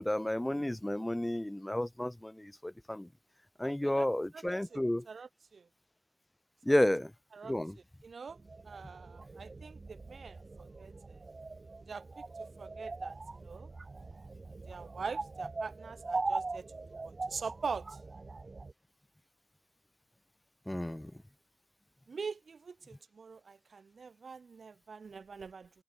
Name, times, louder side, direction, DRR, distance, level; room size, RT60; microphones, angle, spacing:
voice 1, 0.0-3.1 3.6-5.1 6.6-7.1 7.4-7.8 20.7-21.1, left 1 dB, 10° left, 2.5 m, -31 dB
voice 2, 3.6-4.1 4.3-4.8 5.1-5.7 7.3-7.5 8.0-8.4 8.6-11.2 11.9-12.0 12.6-13.7 14.7-16.6 16.9-18.0 22.1-25.7, right 5 dB, 65° right, 2.6 m, -43 dB
sound 1, 8.3-18.7, right 3 dB, 40° right, 5.5 m, -41 dB
open air
cardioid pair, 65°, 0 cm